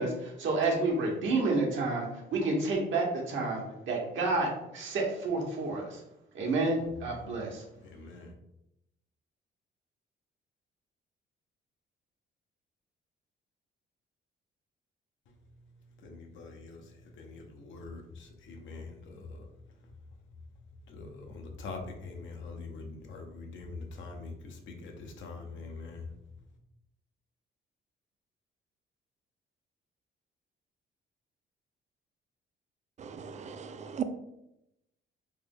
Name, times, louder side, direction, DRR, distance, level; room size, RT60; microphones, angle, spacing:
voice 1, 0.0-2.1 2.3-6.0 6.3-7.6, right 3 dB, 75° right, -1 dB, 1.0 m, -30 dB
voice 2, 7.9-8.3 16.0-16.8 17.2-19.5 20.9-26.0, left 3 dB, 75° left, 3 dB, 0.7 m, -44 dB
voice 3, 33.0-34.0, right 8 dB, 35° right, 9 dB, 0.4 m, -37 dB
3.2 x 2.0 x 3.6 m, 0.84 s
cardioid pair, 90°, 20 cm